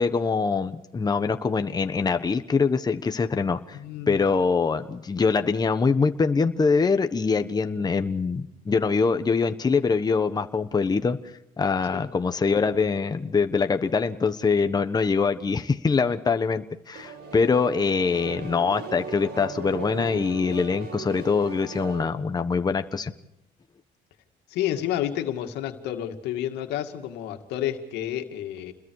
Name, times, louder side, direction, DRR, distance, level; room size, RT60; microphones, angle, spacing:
voice 1, 0.0-3.8 4.1-11.2 11.6-23.1, left 5 dB, 25° left, 1.2 m, -24 dB
voice 2, 3.7-4.2 11.9-12.0 24.5-28.7, left 11 dB, 90° left, 2.3 m, -30 dB
sound 1, 16.9-22.0, right 3 dB, 70° right, 5.6 m, -38 dB
29.5 x 21.5 x 4.8 m
cardioid pair, 110°, 17 cm